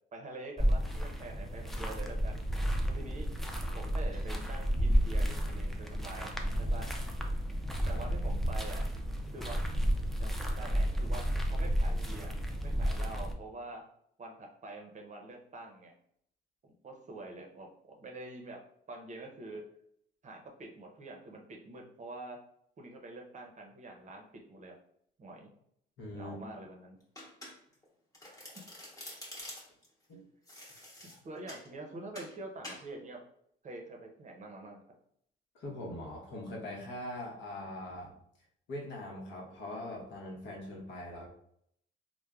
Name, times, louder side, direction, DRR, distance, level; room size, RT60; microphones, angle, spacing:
voice 1, 0.1-2.4 2.9-3.3 3.7-6.9 7.9-8.8 9.3-9.7 10.2-12.3 12.6-13.8 14.2-15.9 16.8-18.6 18.9-19.6 20.2-22.4 22.8-24.7 25.2-25.5 26.1-27.0 31.2-33.2 33.6-34.9, right 2 dB, 40° right, 1 dB, 0.6 m, -46 dB
sound 1, 0.6-13.3, equal, ahead, 0.3 m, -32 dB
voice 2, 26.0-26.4 30.1-30.2 31.1-31.2 35.5-38.1 38.7-41.3, left 1 dB, 70° left, -1 dB, 0.8 m, -42 dB
Domestic sounds home sounds, 27.1-27.8 28.1-29.9 30.5-31.7 32.1-32.3 32.6-32.9, left 1 dB, 15° left, 1.0 m, -47 dB
3.1 x 2.1 x 2.3 m, 0.70 s
cardioid pair, 90°, 20 cm